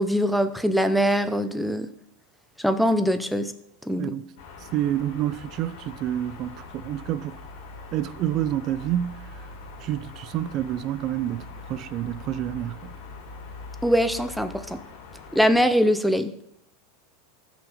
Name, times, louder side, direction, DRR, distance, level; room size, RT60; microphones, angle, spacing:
voice 1, 0.0-1.9 2.6-3.5 3.9-4.1 13.8-14.8 15.3-16.3, equal, ahead, 0.8 m, -22 dB
sound 1, 4.4-15.7, left 3 dB, 70° left, 3.0 m, -42 dB
voice 2, 4.7-7.4 7.9-9.2 9.8-12.9, right 12 dB, 40° right, 0.5 m, -28 dB
14.0 x 6.3 x 5.1 m
supercardioid pair, 135°, 0 cm